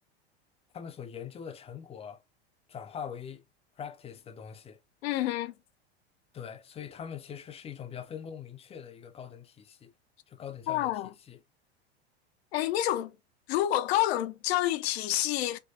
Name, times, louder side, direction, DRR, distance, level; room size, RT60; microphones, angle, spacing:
voice 1, 0.7-2.2 2.7-3.4 3.8-4.8 6.3-9.9 10.3-11.4, left 8 dB, 20° left, 0.5 m, -42 dB
voice 2, 5.0-5.5 10.7-11.1 12.5-13.2 13.5-15.6, left 14 dB, 70° left, 0.6 m, -28 dB
4.4 x 2.2 x 2.8 m
hypercardioid pair, 100°, 33 cm